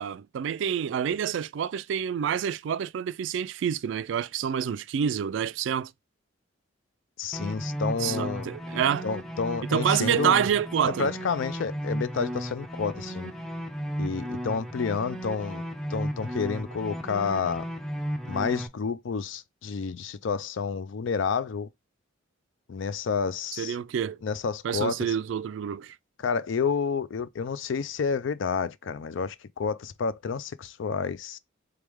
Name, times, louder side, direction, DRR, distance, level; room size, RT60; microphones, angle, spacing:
voice 1, 0.0-5.9 8.0-9.1 9.7-11.1 23.6-24.2 24.6-26.0, right 8 dB, 65° right, 0.3 m, -27 dB
voice 2, 7.2-8.5 9.0-10.4 10.8-13.3 14.0-15.6 15.9-17.7 18.3-21.7 22.7-23.8 24.2-25.1 26.2-31.4, left 5 dB, 70° left, 0.4 m, -30 dB
sound 1, 7.3-18.7, equal, ahead, 0.4 m, -34 dB
3.5 x 3.3 x 3.4 m
head